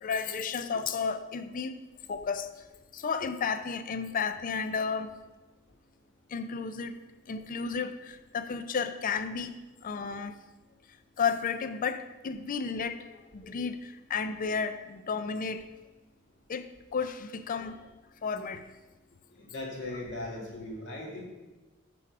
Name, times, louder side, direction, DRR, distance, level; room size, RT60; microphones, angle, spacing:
voice 1, 0.0-1.7 2.1-2.5 2.9-5.1 6.3-7.0 7.3-9.5 9.8-10.3 11.2-13.0 13.3-15.7 16.5-16.7 16.9-17.8 18.2-18.6, left 5 dB, 40° left, 11 dB, 0.4 m, -32 dB
voice 2, 19.4-21.2, left 2 dB, 55° left, -2 dB, 1.9 m, -38 dB
6.1 x 4.7 x 5.9 m, 1.1 s
head